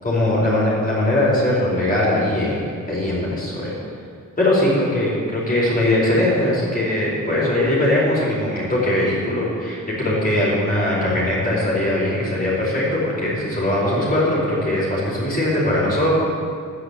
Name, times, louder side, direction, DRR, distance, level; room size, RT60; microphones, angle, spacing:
voice 1, 0.0-3.7 4.4-16.1, left 1 dB, 25° left, -7 dB, 4.5 m, -20 dB
13.0 x 9.7 x 8.4 m, 2.2 s
wide cardioid pair, 155°, 32 cm